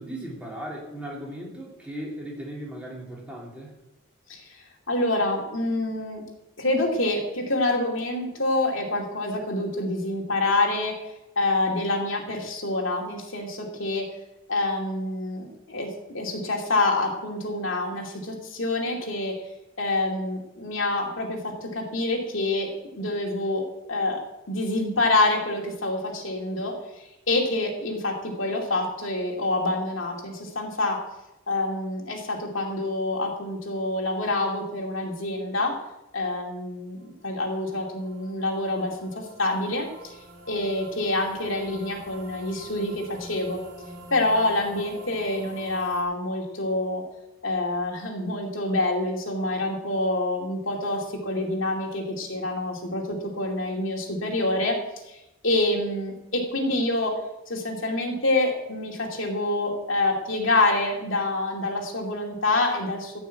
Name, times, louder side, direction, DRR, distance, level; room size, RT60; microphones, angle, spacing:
voice 1, 0.0-3.7, right 1 dB, 5° right, -4 dB, 3.2 m, -37 dB
voice 2, 4.3-6.2 6.6-11.0 11.4-14.0 14.5-15.9 16.1-19.3 19.8-23.6 23.9-24.2 24.5-26.8 27.3-31.0 31.5-35.8 36.1-40.2 40.5-43.6 44.1-47.0 47.4-54.8 55.1-57.2 57.5-63.2, left 2 dB, 65° left, 0 dB, 2.6 m, -27 dB
sound 1, 37.5-46.0, right 2 dB, 75° right, 4.0 m, -46 dB
14.5 x 6.1 x 8.2 m, 0.92 s
head